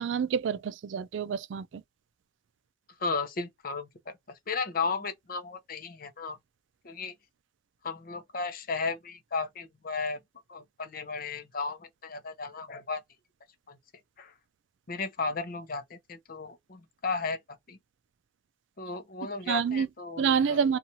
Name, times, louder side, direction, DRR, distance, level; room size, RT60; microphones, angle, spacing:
voice 1, 0.0-1.8 19.5-19.9 20.2-20.8, right 7 dB, 70° right, 0.3 m, -27 dB
voice 2, 3.0-6.4 6.8-7.1 7.8-10.2 10.5-13.0 13.7-13.8 14.2-14.3 14.9-17.8 18.8-20.6, left 4 dB, 45° left, 0.6 m, -34 dB
2.7 x 2.4 x 2.7 m
head